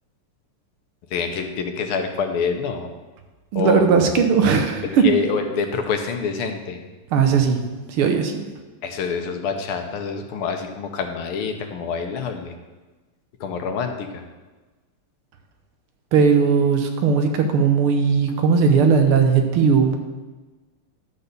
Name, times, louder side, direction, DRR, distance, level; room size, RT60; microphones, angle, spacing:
voice 1, 1.1-2.9 3.6-3.8 4.8-6.8 8.8-12.6 13.4-14.2, left 5 dB, 85° left, 5 dB, 1.7 m, -26 dB
voice 2, 3.5-5.1 7.1-7.6 8.0-8.5 16.1-20.0, right 6 dB, 80° right, 5 dB, 1.8 m, -18 dB
11.0 x 4.1 x 6.7 m, 1.2 s
omnidirectional pair, 2.4 m